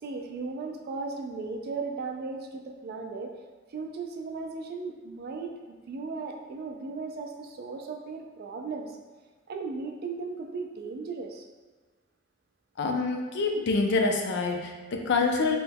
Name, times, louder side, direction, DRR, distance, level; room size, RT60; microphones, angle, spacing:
voice 1, 0.0-3.3 3.7-9.0 9.5-11.4, right 4 dB, 50° right, 3 dB, 0.3 m, -36 dB
voice 2, 12.8-15.6, left 3 dB, 60° left, 2 dB, 0.4 m, -26 dB
3.0 x 2.2 x 3.3 m, 1.4 s
head